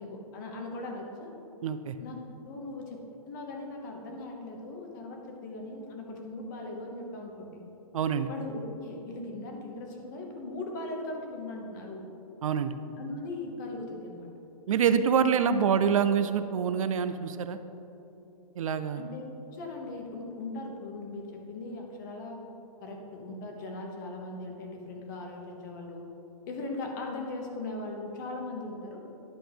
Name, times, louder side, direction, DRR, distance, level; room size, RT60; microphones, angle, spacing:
voice 1, 0.0-1.3 2.0-3.0 3.3-7.6 8.3-12.0 13.0-14.3 19.0-22.4 22.8-26.0 26.5-29.0, left 2 dB, 30° left, 1 dB, 1.0 m, -39 dB
voice 2, 1.6-2.0 7.9-8.3 12.4-12.7 14.7-17.6 18.6-19.0, right 7 dB, 60° right, 11 dB, 0.4 m, -26 dB
10.5 x 5.9 x 3.4 m, 2.9 s
hypercardioid pair, 170°, 19 cm